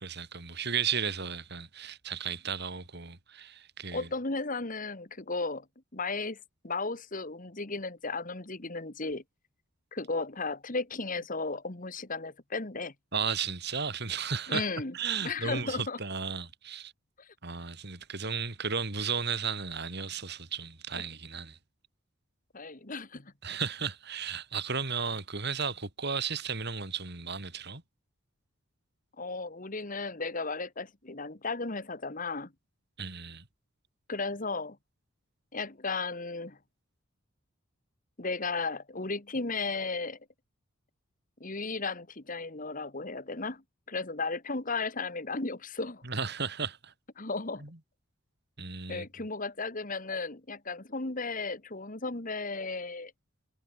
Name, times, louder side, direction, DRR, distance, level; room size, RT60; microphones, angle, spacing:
voice 1, 0.0-4.1 13.1-14.7 14.9-16.9 17.4-21.6 23.4-27.8 33.0-33.4 46.0-46.9 47.6-47.8 48.6-49.1, right 6 dB, 55° right, 3.1 m, -34 dB
voice 2, 3.9-5.7 5.9-9.2 9.9-12.9 14.5-14.9 15.2-16.0 17.2-17.3 18.2-18.3 22.5-23.3 29.2-32.5 34.1-34.8 35.5-36.6 38.2-40.2 41.4-46.0 47.2-47.6 48.9-53.1, left 3 dB, 40° left, 1.9 m, -35 dB
head